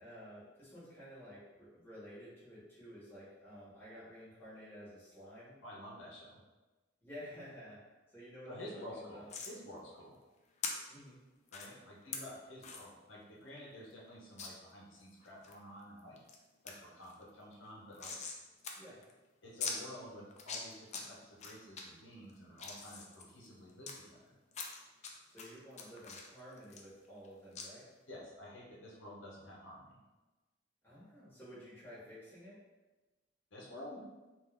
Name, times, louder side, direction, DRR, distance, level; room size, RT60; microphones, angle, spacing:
voice 1, 0.0-5.6 7.0-9.3 10.9-11.2 12.1-12.2 18.8-19.0 20.0-20.3 25.3-27.9 30.8-32.6, equal, 10° left, -9 dB, 1.4 m, -52 dB
voice 2, 5.6-6.4 8.5-10.2 11.5-16.2 16.6-18.2 19.4-24.4 28.1-30.0 33.5-34.0, left 1 dB, 75° left, -4 dB, 0.8 m, -50 dB
sound 1, 9.3-9.5 10.6-10.7 11.5-11.7 12.1-12.2 12.6-12.8 13.2-13.3 13.6-13.7 14.4-14.5 15.0-15.6 16.0-16.4 16.7-16.8 17.0-18.4 18.6-18.7 19.0-19.1 19.6-19.8 20.3-21.0 21.4-21.8 22.3-23.9 24.5-25.1 25.4-27.3 27.6-27.7, left 5 dB, 40° left, 0.4 m, -42 dB
3.7 x 2.5 x 3.4 m, 1.2 s
head